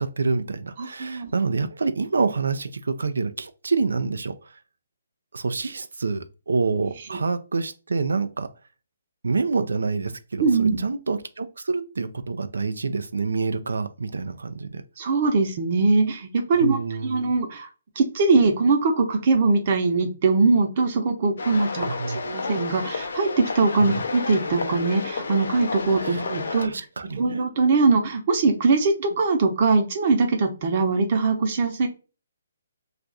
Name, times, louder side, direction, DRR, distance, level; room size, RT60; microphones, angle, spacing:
voice 1, 0.0-4.6 5.3-8.5 9.2-14.8 16.6-17.3 21.8-22.2 23.8-24.0 26.0-27.4, right 4 dB, 85° right, 0.4 m, -27 dB
voice 2, 0.8-1.3 10.4-10.8 15.0-17.7 18.0-21.9 22.1-26.7 27.2-31.9, right 3 dB, 45° right, 0.8 m, -21 dB
sound 1, 21.4-26.7, left 4 dB, 75° left, 0.5 m, -31 dB
2.4 x 2.3 x 3.9 m
hypercardioid pair, 155°, 0 cm